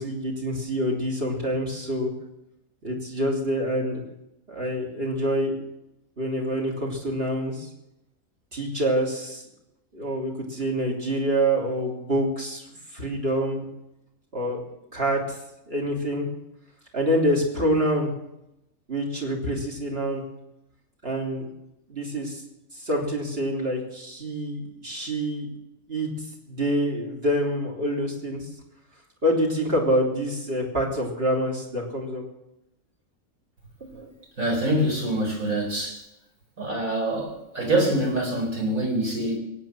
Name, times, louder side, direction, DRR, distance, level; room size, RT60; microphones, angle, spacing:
voice 1, 0.0-2.1 2.8-4.0 4.5-5.6 6.2-7.7 8.5-9.4 9.9-12.7 12.9-13.7 14.3-14.6 14.9-15.4 15.7-16.3 16.9-18.1 18.9-20.2 21.0-21.5 21.9-22.4 22.7-25.5 25.9-26.1 26.5-28.4 29.2-32.2 33.9-34.1, equal, 45° right, -1 dB, 3.5 m, -26 dB
voice 2, 34.4-36.0 36.6-39.4, right 1 dB, 75° right, 0 dB, 4.7 m, -25 dB
22.5 x 8.7 x 6.1 m, 0.88 s
omnidirectional pair, 1.5 m